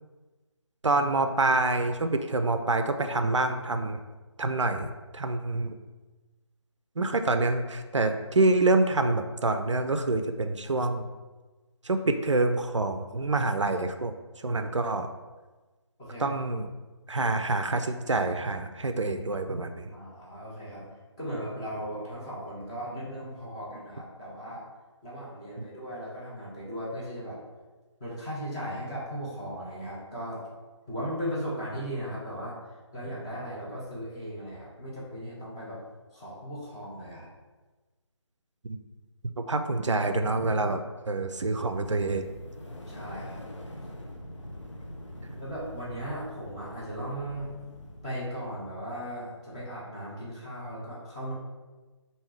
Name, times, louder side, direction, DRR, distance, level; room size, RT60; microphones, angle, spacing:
voice 1, 0.8-4.0 4.4-5.7 7.0-11.1 11.8-15.1 16.2-16.7 17.1-20.0 38.6-38.8 39.4-42.3, right 2 dB, 75° right, 7 dB, 0.4 m, -27 dB
voice 2, 19.9-20.8 21.2-24.7 25.0-27.4 28.0-30.4 30.9-32.6 32.9-35.8 36.1-37.3 42.9-43.4 45.3-47.5 48.0-51.3, equal, 15° left, -9 dB, 0.8 m, -37 dB
sound 1, 41.4-48.4, left 1 dB, 70° left, 0.7 m, -44 dB
3.5 x 2.7 x 4.4 m, 1.3 s
figure-of-eight pair, 155°, 16 cm